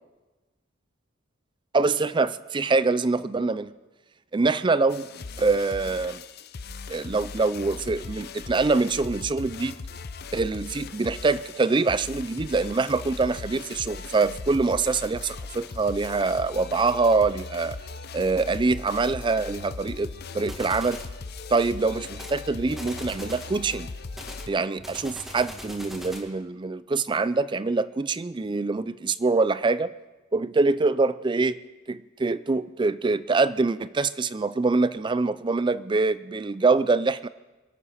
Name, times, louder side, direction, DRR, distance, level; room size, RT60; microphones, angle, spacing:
voice 1, 1.7-3.7 4.3-5.1 5.4-6.2 6.9-9.8 10.3-17.8 18.1-21.0 21.5-23.9 24.5-29.9 30.3-31.6 31.9-37.3, right 3 dB, 25° right, 16 dB, 0.4 m, -24 dB
sound 1, 4.9-24.5, left 4 dB, 50° left, 0.6 m, -39 dB
sound 2, 20.5-21.1 22.1-22.4 22.7-23.5 24.1-26.3, equal, ahead, 2.0 m, -41 dB
24.0 x 8.2 x 5.7 m, 1.2 s
head